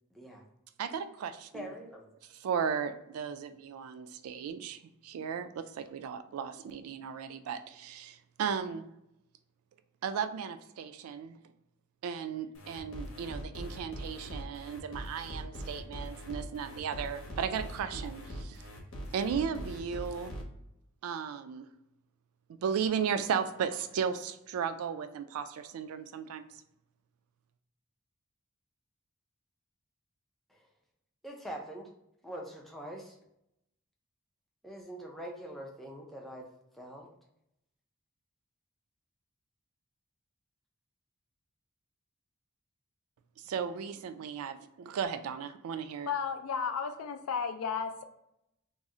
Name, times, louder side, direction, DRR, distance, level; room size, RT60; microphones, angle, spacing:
voice 1, 0.1-0.4 1.5-2.0 30.5-30.6 31.2-31.9 32.2-33.2 34.6-36.5 36.7-37.1, equal, ahead, -1 dB, 0.4 m, -43 dB
voice 2, 0.8-1.7 2.3-8.9 10.0-11.4 12.0-18.6 19.1-20.3 21.0-21.7 22.6-26.5 43.4-46.1, right 7 dB, 85° right, 11 dB, 0.3 m, -35 dB
sound 1, 12.5-20.4, equal, 75° left, 0.8 m, -42 dB
voice 3, 46.1-48.0, left 6 dB, 90° left, 8 dB, 0.3 m, -33 dB
2.6 x 2.0 x 3.6 m, 0.81 s
head